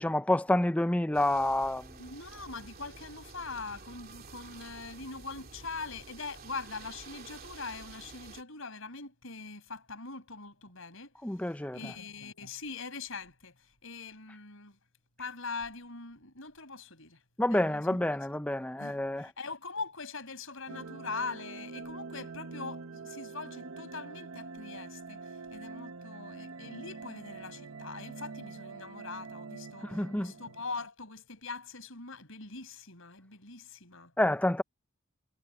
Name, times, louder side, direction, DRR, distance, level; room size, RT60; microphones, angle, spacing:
voice 1, 0.0-2.0 11.2-11.8 17.4-19.3 29.8-30.3 34.2-34.6, left 1 dB, 5° left, 0.5 m, -28 dB
sound 1, 1.1-8.4, right 4 dB, 45° right, 2.8 m, -50 dB
voice 2, 2.0-14.8 15.2-17.2 17.5-18.0 18.8-34.1, left 4 dB, 70° left, 5.6 m, -42 dB
sound 2, 20.7-30.9, right 4 dB, 80° right, 1.1 m, -45 dB
head